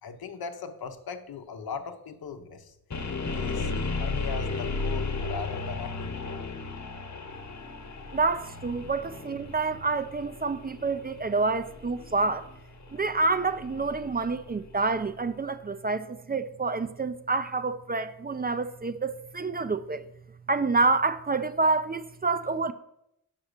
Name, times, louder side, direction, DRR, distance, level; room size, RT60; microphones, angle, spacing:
voice 1, 0.0-2.7 3.3-6.2, left 5 dB, 80° left, 0.8 m, -38 dB
sound 1, 2.9-14.9, left 3 dB, 50° left, 1.2 m, -35 dB
voice 2, 8.1-12.5 12.9-20.0 20.5-22.7, right 3 dB, 25° right, 0.5 m, -28 dB
5.7 x 4.8 x 6.5 m
cardioid pair, 50°, 36 cm